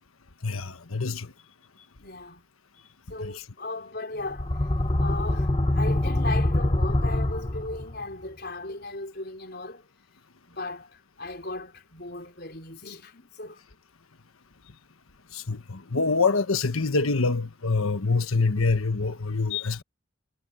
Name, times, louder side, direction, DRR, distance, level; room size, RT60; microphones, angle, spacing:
voice 1, 0.4-1.3 3.2-3.3 15.3-19.8, left 4 dB, 90° left, 1.3 m, -25 dB
voice 2, 2.0-2.4 3.1-4.5 5.0-9.8 10.5-13.6, left 2 dB, 50° left, 4.9 m, -37 dB
sound 1, 4.3-8.0, left 1 dB, 25° left, 1.0 m, -24 dB
head